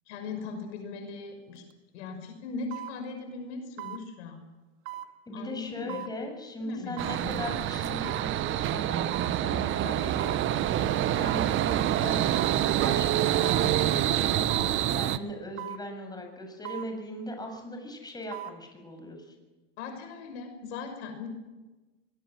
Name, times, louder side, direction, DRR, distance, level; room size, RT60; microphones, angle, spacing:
voice 1, 0.1-1.6 1.9-4.4 5.3-6.0 6.6-7.4 19.8-21.3, left 4 dB, 65° left, 5 dB, 6.0 m, -39 dB
sound 1, 1.6-1.7 2.7-3.0 3.8-4.0 4.9-5.1 5.9-6.1 7.0-7.2 8.0-8.3 9.1-9.4 10.2-10.4 11.3-11.5 12.3-12.6 13.4-13.7 14.5-14.8 15.6-15.8 16.6-16.9 18.1-18.6 19.0-19.1, right 13 dB, 60° right, 2.6 m, -39 dB
voice 2, 5.3-19.3, left 1 dB, 10° left, 3 dB, 7.4 m, -39 dB
sound 2, 7.0-15.2, right 12 dB, 35° right, 1.1 m, -26 dB
25.0 x 20.5 x 7.7 m, 1.2 s
hypercardioid pair, 115°, 36 cm